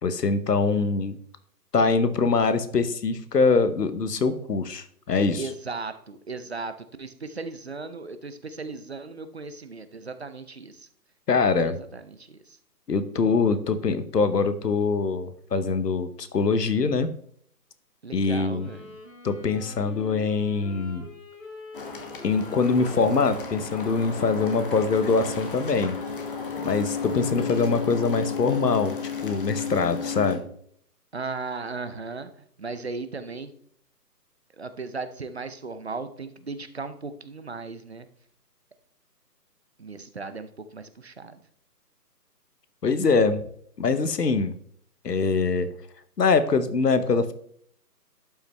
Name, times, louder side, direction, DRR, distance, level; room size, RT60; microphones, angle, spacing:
voice 1, 0.0-1.2 1.7-5.4 11.3-11.8 12.9-17.1 18.1-18.7 19.2-21.1 22.2-26.0 26.6-29.0 29.2-30.4 42.8-43.4 43.8-44.5 45.0-45.7 46.2-47.3, left 4 dB, 75° left, 12 dB, 1.2 m, -23 dB
voice 2, 5.4-10.9 11.3-12.6 18.0-19.0 31.1-32.3 32.6-33.5 34.6-38.1 39.8-41.4, right 4 dB, 40° right, 11 dB, 0.6 m, -37 dB
Wind instrument woodwind instrument, 18.5-25.4, left 2 dB, 55° left, 4.1 m, -46 dB
sound 1, 21.7-30.4, left 6 dB, 30° left, 1.2 m, -33 dB
11.5 x 5.7 x 3.3 m, 0.64 s
figure-of-eight pair, 155°, 49 cm